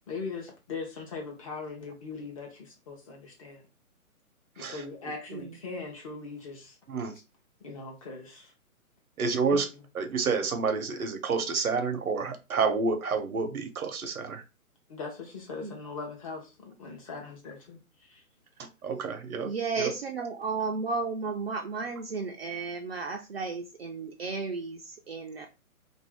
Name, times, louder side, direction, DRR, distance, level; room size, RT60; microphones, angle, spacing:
voice 1, 0.1-3.7 4.6-6.8 7.6-8.5 14.9-17.8 18.1-18.2, left 4 dB, 25° left, 0.7 m, -40 dB
voice 2, 9.2-9.7 9.9-14.4 18.8-19.5 19.8-19.9, right 4 dB, 75° right, 0.8 m, -29 dB
voice 3, 19.4-25.5, right 4 dB, 45° right, 0.5 m, -33 dB
2.6 x 2.6 x 3.4 m
hypercardioid pair, 140°, 43 cm